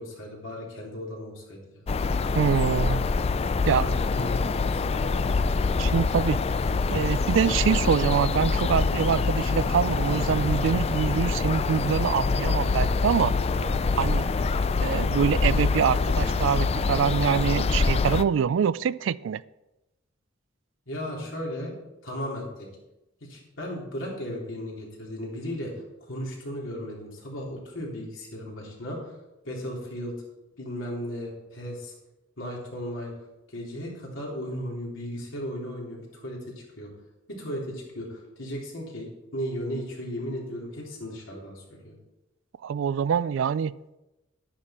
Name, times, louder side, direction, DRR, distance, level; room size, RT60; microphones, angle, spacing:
voice 1, 0.0-1.8 3.8-5.3 13.5-13.9 20.9-21.8 22.0-22.7 23.3-25.7 26.1-29.0 29.4-30.1 30.6-31.9 32.4-33.1 33.5-36.9 37.3-41.9, equal, 80° left, -2 dB, 3.4 m, -36 dB
sound 1, 1.9-18.2, left 4 dB, 30° left, 0.3 m, -25 dB
voice 2, 2.3-3.0 3.7-3.9 5.8-6.4 6.9-13.3 14.0-14.3 14.8-19.4 42.6-43.8, right 7 dB, 70° right, 19 dB, 0.3 m, -25 dB
11.0 x 9.8 x 4.3 m, 0.98 s
head